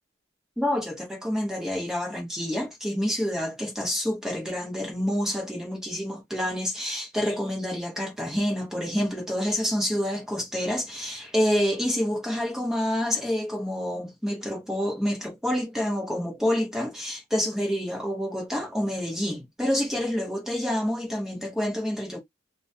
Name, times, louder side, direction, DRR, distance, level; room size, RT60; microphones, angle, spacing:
voice 1, 0.6-22.2, equal, 5° right, 0.9 m, -28 dB
2.2 x 2.2 x 2.6 m
head